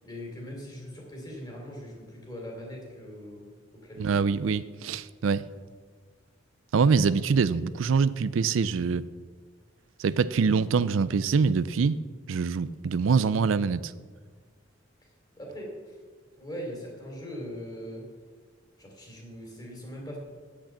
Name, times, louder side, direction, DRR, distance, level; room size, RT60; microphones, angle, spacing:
voice 1, 0.0-3.5 3.8-4.3 15.0-15.1 15.4-16.0 16.4-18.1 18.8-20.2, equal, 20° left, -1 dB, 3.1 m, -41 dB
voice 2, 4.0-5.5 6.7-9.0 10.0-12.0 12.3-13.9, right 5 dB, 85° right, 16 dB, 0.4 m, -24 dB
8.8 x 8.1 x 7.4 m, 1.5 s
head